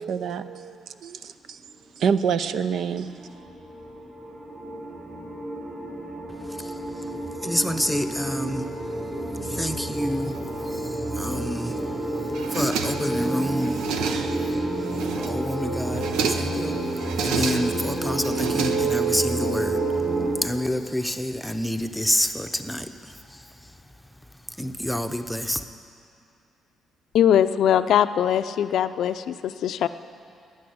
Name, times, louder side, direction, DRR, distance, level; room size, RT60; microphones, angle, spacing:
voice 1, 0.0-1.6 2.0-3.1, right 7 dB, 70° right, 12 dB, 0.6 m, -27 dB
sound 1, 2.3-20.3, right 2 dB, 30° right, 4.3 m, -29 dB
voice 2, 7.4-8.7 9.4-13.9 14.3-14.6 15.2-19.8 20.4-23.5 24.6-25.6, equal, 5° left, 7 dB, 0.8 m, -28 dB
sound 2, 12.3-13.2 13.6-14.5 14.9-15.5 15.8-16.6 17.0-17.9 18.2-19.2, right 6 dB, 90° right, 0.9 m, -30 dB
voice 3, 27.1-29.9, left 10 dB, 75° left, 11 dB, 0.5 m, -21 dB
13.0 x 9.4 x 9.5 m, 2.5 s
cardioid pair, 90°, 0 cm